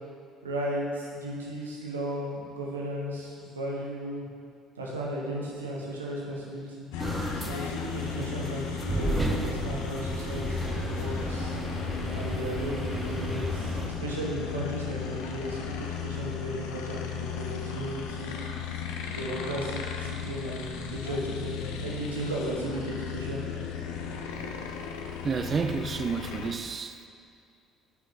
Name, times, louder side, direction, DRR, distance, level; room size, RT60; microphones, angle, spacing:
voice 1, 0.4-4.3 4.8-6.9 7.4-11.6 12.1-18.4 19.1-23.4, equal, 85° right, 1.0 m, -35 dB
sound 1, 6.9-26.5, left 7 dB, 65° left, 0.5 m, -36 dB
sound 2, 7.0-13.9, right 1 dB, 10° right, 1.0 m, -33 dB
voice 2, 25.2-27.0, right 5 dB, 35° right, 0.3 m, -30 dB
7.9 x 5.3 x 3.6 m
figure-of-eight pair, 55°, 0 cm